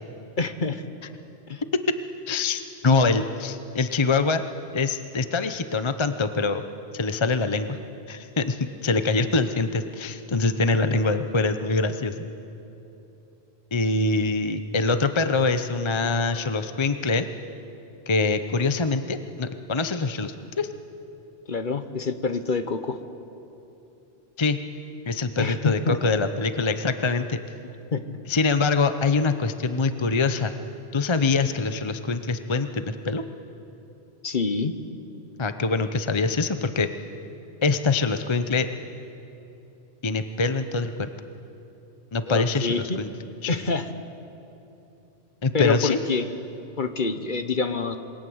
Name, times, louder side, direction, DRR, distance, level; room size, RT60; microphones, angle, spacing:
voice 1, 0.4-0.8 1.5-1.6 21.5-23.0 25.4-26.0 27.9-28.2 34.2-34.7 42.3-43.0 43.5-43.9 45.5-46.3 46.8-48.0, left 4 dB, 45° left, 9 dB, 1.2 m, -26 dB
voice 2, 2.3-4.4 4.7-6.6 6.9-7.8 8.1-12.1 13.7-17.3 18.1-20.7 24.4-24.6 25.1-27.4 28.3-30.5 30.9-33.2 35.4-36.9 37.6-38.7 40.0-41.1 42.1-43.1 43.4-43.5 45.4-46.0, left 3 dB, 30° left, 9 dB, 0.8 m, -24 dB
27.0 x 21.5 x 8.0 m, 2.9 s
omnidirectional pair, 1.2 m